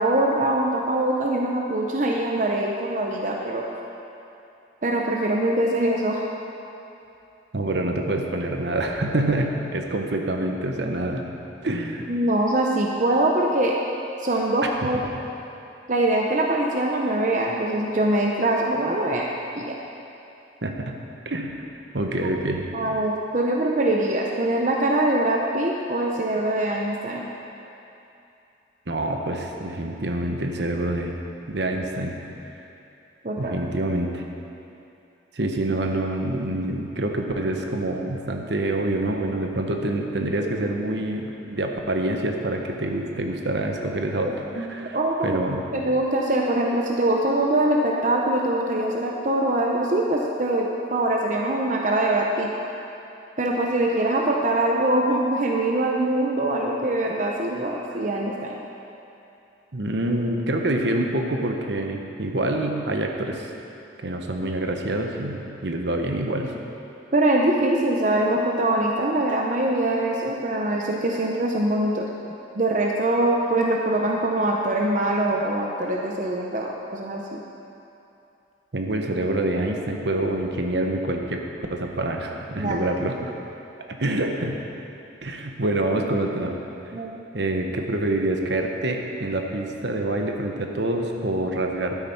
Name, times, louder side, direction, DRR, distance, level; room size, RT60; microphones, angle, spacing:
voice 1, 0.0-3.7 4.8-6.2 12.1-13.7 14.2-15.1 15.9-19.3 19.5-19.8 22.2-22.4 22.7-27.3 33.2-33.5 40.4-40.5 44.5-45.4 45.7-52.5 53.4-58.6 67.1-72.1 72.5-77.4 82.6-82.8 86.9-87.2, right 1 dB, 40° right, -1 dB, 0.7 m, -23 dB
voice 2, 7.5-11.3 11.6-12.1 14.8-14.9 20.6-21.0 21.3-21.6 21.9-22.7 28.9-31.1 31.5-32.2 33.4-34.2 35.3-45.0 45.2-45.6 59.7-63.5 64.0-66.5 78.7-81.4 81.7-83.3 83.9-84.6 85.2-86.5 87.3-91.9, right 1 dB, 65° right, 2 dB, 1.0 m, -26 dB
12.0 x 9.6 x 4.5 m, 2.8 s
head